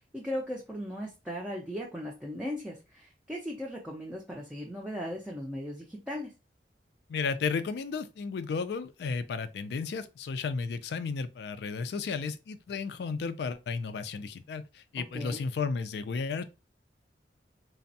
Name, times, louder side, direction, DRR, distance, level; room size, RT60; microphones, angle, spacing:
voice 1, 0.1-6.3 14.9-15.5, equal, 5° right, 0.4 m, -37 dB
voice 2, 7.1-16.4, left 5 dB, 65° left, 0.3 m, -33 dB
3.3 x 2.0 x 2.6 m
head